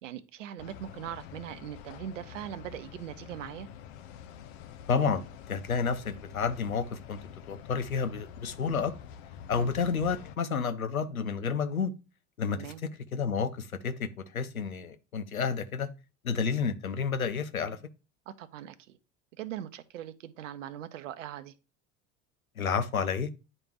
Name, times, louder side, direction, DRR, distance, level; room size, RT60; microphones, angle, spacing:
voice 1, 0.0-3.7 9.6-9.7 12.5-12.8 18.3-19.0 19.3-21.5, right 11 dB, 65° right, 0.7 m, -41 dB
sound 1, 0.6-10.4, left 9 dB, 50° left, 0.6 m, -47 dB
voice 2, 4.9-7.2 7.5-8.9 9.5-11.9 12.4-12.7 13.1-15.9 16.2-17.8 22.6-23.3, left 5 dB, 85° left, 0.7 m, -30 dB
9.6 x 3.3 x 3.0 m
figure-of-eight pair, 70°, 41 cm